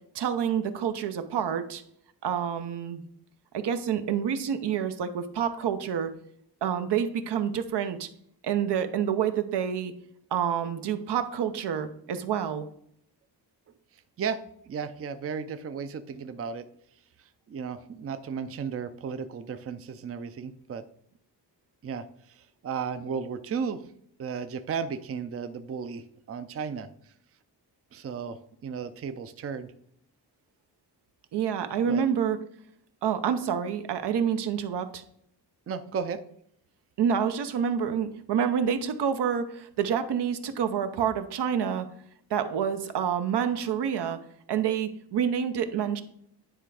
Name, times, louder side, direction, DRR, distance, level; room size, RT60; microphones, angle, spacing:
voice 1, 0.1-1.8 2.2-3.0 3.5-6.1 6.6-8.1 8.4-9.9 10.3-12.7 31.3-32.4 33.0-35.0 37.0-41.9 42.3-44.2 44.5-46.0, right 8 dB, 75° right, 9 dB, 0.8 m, -28 dB
voice 2, 14.2-16.6 17.2-20.8 21.8-23.9 24.2-26.9 27.9-29.7 31.8-32.0 35.7-36.2, right 6 dB, 35° right, 10 dB, 0.5 m, -34 dB
10.0 x 3.4 x 4.8 m, 0.69 s
wide cardioid pair, 115°, 41 cm